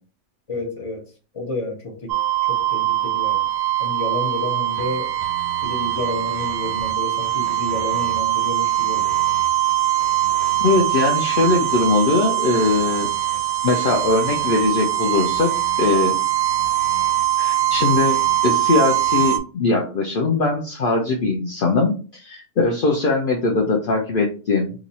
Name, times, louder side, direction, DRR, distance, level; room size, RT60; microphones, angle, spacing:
voice 1, 0.5-2.1 2.4-3.4 3.8-5.1 5.6-9.2, left 2 dB, 30° left, 2 dB, 0.7 m, -30 dB
sound 1, 2.1-19.4, right 13 dB, 60° right, 0.7 m, -22 dB
voice 2, 10.6-13.1 13.6-16.1 17.4-24.7, left 3 dB, 60° left, 0 dB, 0.5 m, -21 dB
3.0 x 2.5 x 3.9 m, 0.36 s
omnidirectional pair, 1.5 m